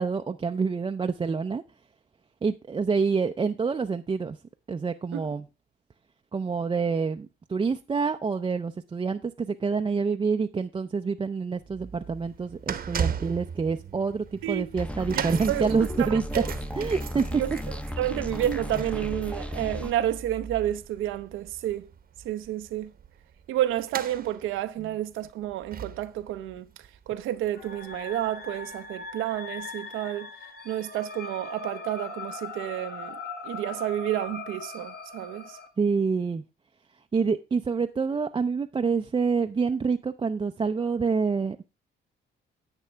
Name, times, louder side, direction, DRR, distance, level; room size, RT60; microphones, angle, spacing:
voice 1, 0.0-1.6 2.4-4.4 4.7-5.4 6.3-16.2 16.8-17.2 35.8-36.4 37.1-41.6, right 5 dB, 25° right, 0.5 m, -27 dB
sound 1, 11.6-28.0 28.2-28.5 29.2-29.3, right 7 dB, 50° right, 0.9 m, -39 dB
sound 2, 14.8-19.9, equal, 5° left, 0.7 m, -34 dB
voice 2, 15.1-15.7 16.0-16.5 17.3-17.5 18.0-21.9 22.2-22.9 23.5-26.7 27.1-30.3 30.6-33.2 33.4-35.6, right 12 dB, 90° right, 0.7 m, -30 dB
sound 3, 27.5-35.7, left 4 dB, 55° left, 2.2 m, -40 dB
10.5 x 8.2 x 3.3 m
cardioid pair, 90°, 20 cm